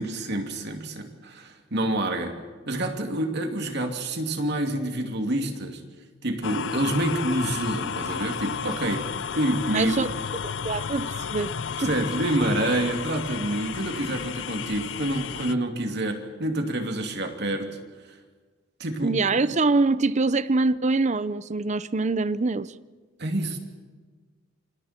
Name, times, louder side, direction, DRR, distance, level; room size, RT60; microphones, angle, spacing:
voice 1, 0.0-2.4 2.7-5.8 6.2-9.1 9.3-9.9 11.8-17.7 18.8-19.2 23.2-23.6, right 1 dB, 60° right, 2.8 m, -27 dB
sound 1, 6.4-15.5, left 7 dB, 65° left, 0.6 m, -32 dB
voice 2, 9.7-10.1 10.4-11.6 11.8-11.9 19.0-22.7, right 3 dB, 35° right, 0.6 m, -24 dB
29.0 x 26.0 x 4.5 m
head